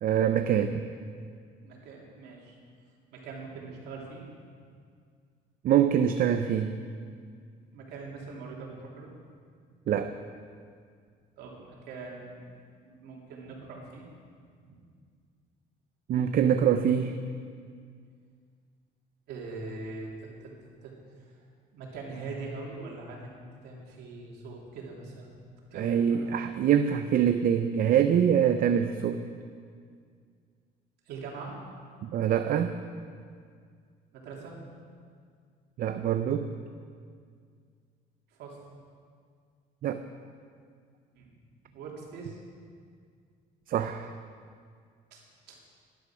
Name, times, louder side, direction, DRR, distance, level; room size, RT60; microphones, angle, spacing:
voice 1, 0.0-0.8 5.6-6.7 9.9-10.1 16.1-17.2 25.7-29.2 32.0-32.8 35.8-36.5 39.8-40.0 43.7-44.1, right 9 dB, 55° right, 8 dB, 0.6 m, -24 dB
voice 2, 1.6-2.6 3.1-4.2 7.7-9.1 11.4-14.1 14.7-14.8 19.3-21.4 21.7-25.4 25.7-26.4 31.0-31.6 34.1-34.6 38.3-38.6 41.1-41.3 41.7-42.4 45.1-45.2 45.5-45.7, right 3 dB, 80° right, -2 dB, 3.3 m, -42 dB
12.5 x 11.5 x 6.2 m, 2.1 s
cardioid pair, 110°, 17 cm